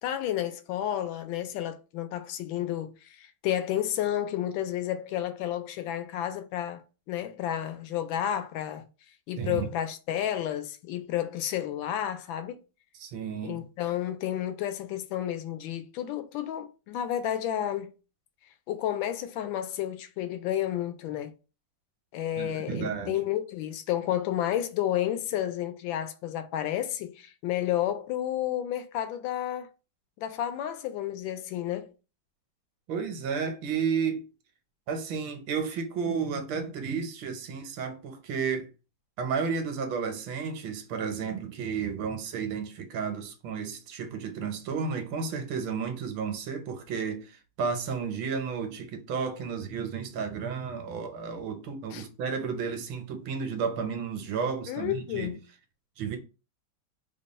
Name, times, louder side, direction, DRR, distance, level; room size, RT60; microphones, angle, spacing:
voice 1, 0.0-8.9 9.3-12.6 13.4-17.9 18.7-21.3 22.1-29.7 30.2-31.9 51.9-52.0 54.7-55.4, left 11 dB, 80° left, 1.3 m, -31 dB
voice 2, 9.4-9.7 13.0-13.6 22.4-23.2 32.9-34.3 34.9-38.7 39.2-55.3 56.0-56.2, right 6 dB, 80° right, 1.5 m, -32 dB
3.5 x 2.2 x 3.9 m
omnidirectional pair, 2.1 m